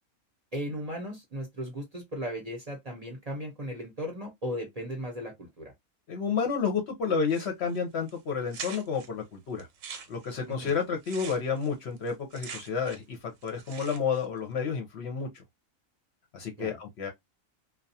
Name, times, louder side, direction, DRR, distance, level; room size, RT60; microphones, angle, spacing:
voice 1, 0.5-5.7 10.5-10.7 16.6-16.8, equal, 40° right, 0.6 m, -36 dB
voice 2, 6.1-9.7 10.1-15.4 16.3-17.1, left 6 dB, 60° left, 0.8 m, -30 dB
sound 1, 7.3-7.8 8.1-8.2 8.5-9.1 9.6-13.1 13.4-14.2, right 6 dB, 75° right, 1.0 m, -43 dB
2.3 x 2.3 x 2.6 m
omnidirectional pair, 1.4 m